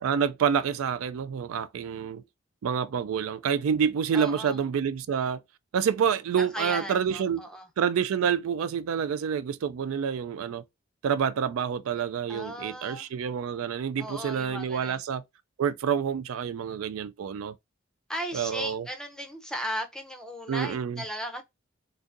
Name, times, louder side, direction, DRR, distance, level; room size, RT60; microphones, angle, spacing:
voice 1, 0.0-2.2 2.6-5.4 5.7-7.4 7.8-10.6 11.0-15.2 15.6-17.5 18.3-18.9 20.5-21.0, right 7 dB, 85° right, 0.3 m, -28 dB
voice 2, 4.1-4.6 6.4-7.7 12.3-13.1 14.0-15.0 18.1-21.4, equal, 5° left, 0.5 m, -36 dB
3.9 x 2.6 x 2.5 m
head